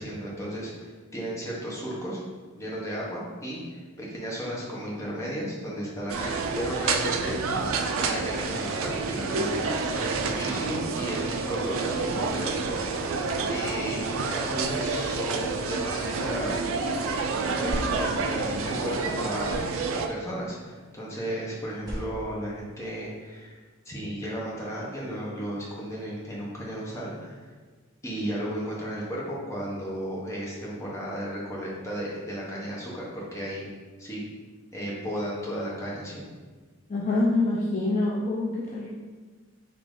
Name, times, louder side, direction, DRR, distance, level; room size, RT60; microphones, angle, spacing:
voice 1, 0.0-2.2 2.5-13.2 13.5-16.5 17.6-19.6 20.1-23.6 23.8-27.4 28.0-33.7 34.0-34.2 34.7-36.2, equal, 15° left, -5 dB, 0.9 m, -34 dB
sound 1, 6.1-20.1, right 4 dB, 70° right, 0.4 m, -29 dB
sound 2, 17.4-19.0 19.3-20.3 21.6-23.3, equal, 15° right, 0.9 m, -40 dB
voice 2, 36.9-38.9, left 2 dB, 35° left, -5 dB, 0.5 m, -25 dB
5.1 x 2.8 x 3.7 m, 1.4 s
head